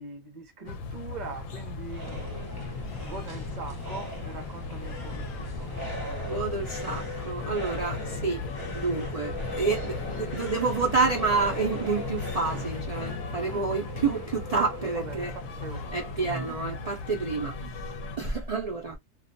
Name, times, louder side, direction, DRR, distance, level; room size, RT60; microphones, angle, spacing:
voice 1, 0.0-2.3 2.9-5.7 14.9-16.1 16.8-17.2, right 3 dB, 40° right, 0.7 m, -42 dB
sound 1, 0.7-18.2, left 4 dB, 70° left, 0.9 m, -38 dB
sound 2, 1.3-13.2, right 1 dB, 15° right, 1.2 m, -41 dB
sound 3, 2.0-17.8, left 2 dB, 25° left, 0.5 m, -41 dB
voice 2, 6.2-8.4 8.7-15.3 15.9-17.8 18.2-19.0, right 4 dB, 75° right, 0.3 m, -29 dB
2.4 x 2.1 x 2.5 m
omnidirectional pair, 1.4 m